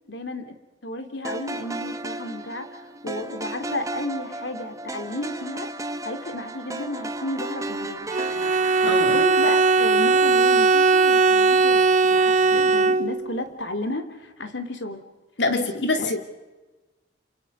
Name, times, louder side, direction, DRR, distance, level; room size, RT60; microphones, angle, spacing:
voice 1, 0.1-0.5 0.8-5.7 6.0-8.1 8.8-15.0 15.5-15.7 15.9-16.1, left 1 dB, 90° left, 7 dB, 2.9 m, -33 dB
sound 1, 1.2-11.5, right 2 dB, 20° right, 1.3 m, -35 dB
Bowed string instrument, 8.1-13.4, right 4 dB, 45° right, 0.9 m, -19 dB
voice 2, 8.8-9.2 15.4-16.2, left 2 dB, 75° left, 6 dB, 2.7 m, -25 dB
28.0 x 27.5 x 5.4 m, 1.2 s
head